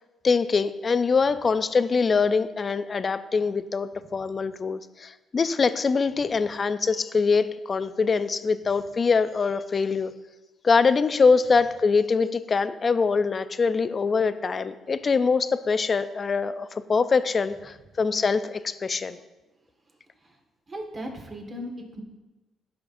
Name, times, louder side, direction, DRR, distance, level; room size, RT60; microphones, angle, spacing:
voice 1, 0.2-10.1 10.6-19.2, left 4 dB, 40° left, 13 dB, 0.4 m, -23 dB
voice 2, 20.7-22.0, equal, 35° right, 1 dB, 1.7 m, -38 dB
13.5 x 5.8 x 2.6 m, 1.1 s
cardioid pair, 90°, 0 cm